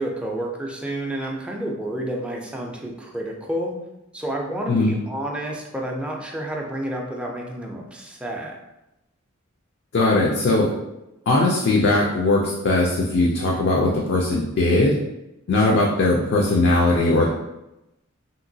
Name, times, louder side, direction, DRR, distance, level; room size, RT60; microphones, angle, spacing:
voice 1, 0.0-3.7 4.1-8.6, right 1 dB, 5° right, -1 dB, 0.4 m, -30 dB
voice 2, 4.7-5.0 9.9-10.7 11.3-15.0 15.5-17.3, left 2 dB, 60° left, -2 dB, 0.4 m, -19 dB
2.9 x 2.9 x 2.6 m, 0.93 s
head